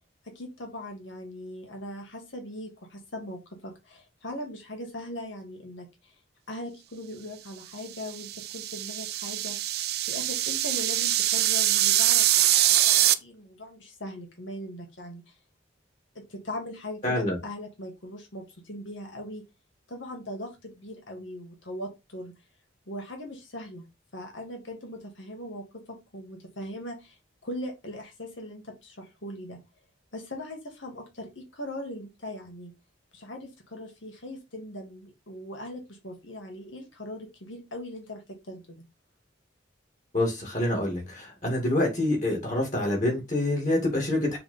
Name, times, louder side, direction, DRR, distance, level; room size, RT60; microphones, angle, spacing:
voice 1, 0.2-6.2 6.5-9.8 10.0-15.4 16.2-19.4 19.9-22.3 22.9-23.9 24.1-29.6 30.1-32.7 33.1-38.8, left 1 dB, 85° left, 2 dB, 1.9 m, -40 dB
sound 1, 8.0-13.1, right 13 dB, 55° right, 0.5 m, -24 dB
voice 2, 17.0-17.4 40.1-44.4, left 1 dB, 40° left, 0 dB, 2.6 m, -26 dB
6.9 x 3.5 x 5.7 m, 0.24 s
head